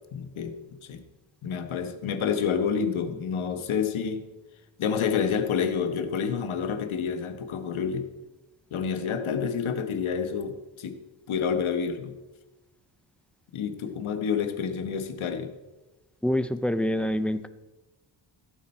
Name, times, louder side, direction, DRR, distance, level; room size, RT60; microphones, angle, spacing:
voice 1, 0.1-0.6 0.8-1.0 1.4-4.2 4.8-8.1 8.7-11.0 11.3-12.1 13.5-15.5, left 6 dB, 70° left, 8 dB, 1.3 m, -28 dB
voice 2, 16.2-17.5, left 1 dB, 5° left, 12 dB, 0.3 m, -26 dB
15.5 x 8.7 x 4.4 m, 1.1 s
wide cardioid pair, 135°, 50 cm